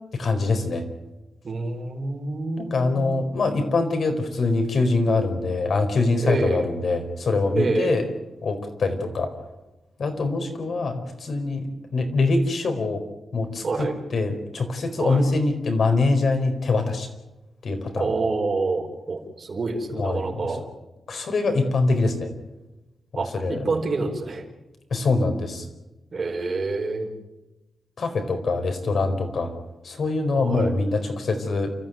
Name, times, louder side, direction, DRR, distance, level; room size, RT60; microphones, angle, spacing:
voice 1, 0.1-0.9 2.6-8.1 8.4-9.3 10.0-13.0 13.3-17.1 17.6-18.1 19.9-20.6 21.1-22.3 23.1-23.6 24.9-25.7 28.0-29.5 29.8-31.7, left 3 dB, 55° left, 6 dB, 4.7 m, -24 dB
voice 2, 1.4-3.1 6.2-6.7 7.5-8.0 13.6-13.9 15.0-15.2 17.9-20.6 23.1-24.4 26.1-27.1 30.3-30.7, right 3 dB, 40° right, 1 dB, 4.9 m, -27 dB
29.5 x 14.5 x 9.2 m, 1.0 s
wide cardioid pair, 120°, 0 cm